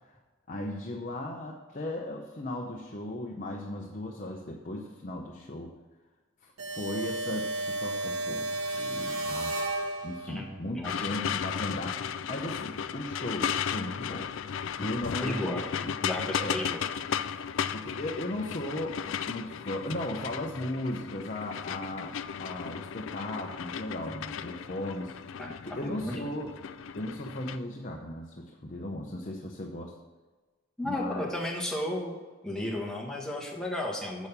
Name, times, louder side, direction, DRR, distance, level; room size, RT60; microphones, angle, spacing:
voice 1, 0.5-5.7 6.4-9.6 10.0-14.3 14.8-15.9 16.2-16.6 17.7-25.2 25.6-26.6 26.9-29.9 30.8-31.3, left 1 dB, 35° left, 0 dB, 0.8 m, -37 dB
sound 1, 6.6-10.5, right 2 dB, 90° right, 1.1 m, -33 dB
voice 2, 10.3-11.0 14.7-14.9 15.2-15.6 16.0-16.8 25.4-26.2 30.8-32.1 32.4-34.3, left 1 dB, 5° left, -3 dB, 1.4 m, -34 dB
sound 2, 10.8-27.6, left 8 dB, 70° left, 0.4 m, -35 dB
7.2 x 6.3 x 6.7 m, 1.3 s
head